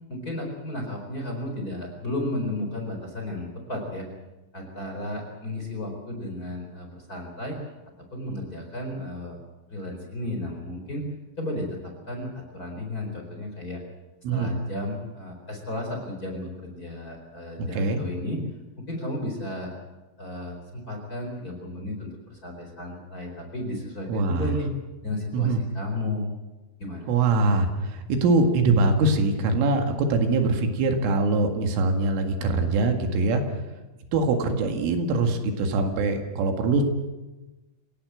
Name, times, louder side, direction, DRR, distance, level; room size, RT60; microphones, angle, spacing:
voice 1, 0.1-4.1 4.5-7.6 8.1-9.4 9.7-11.1 11.4-13.8 14.3-18.4 18.9-19.7 20.2-24.7 25.0-26.3 26.8-27.1, left 1 dB, 20° left, 2 dB, 4.1 m, -33 dB
voice 2, 17.6-18.0 24.1-24.5 25.3-25.6 27.1-33.4 34.1-36.8, right 3 dB, 75° right, 5 dB, 4.4 m, -23 dB
27.5 x 17.0 x 7.8 m, 1.1 s
omnidirectional pair, 5.9 m